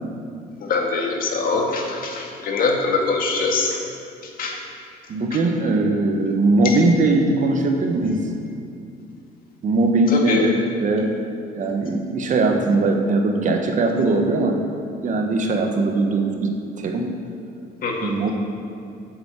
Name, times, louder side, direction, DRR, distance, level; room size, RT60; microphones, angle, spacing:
voice 1, 0.6-3.8 4.2-4.6 6.6-6.8 10.1-10.4 17.8-18.1, left 4 dB, 60° left, 0 dB, 2.0 m, -23 dB
voice 2, 5.1-8.3 9.6-11.2 11.6-14.7 15.0-17.1 18.0-18.3, right 2 dB, 50° right, 3 dB, 1.3 m, -20 dB
7.9 x 7.8 x 8.3 m, 2.5 s
cardioid pair, 110°, 17 cm